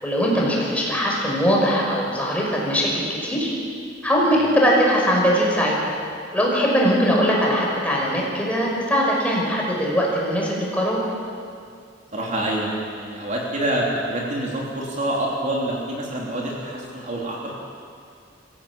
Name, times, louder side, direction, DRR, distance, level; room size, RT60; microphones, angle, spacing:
voice 1, 0.0-3.5 4.0-5.9 6.3-11.0, equal, 5° left, -3 dB, 5.7 m, -21 dB
voice 2, 12.1-17.5, right 1 dB, 40° right, -3 dB, 3.4 m, -26 dB
23.0 x 16.0 x 8.8 m, 2.3 s
head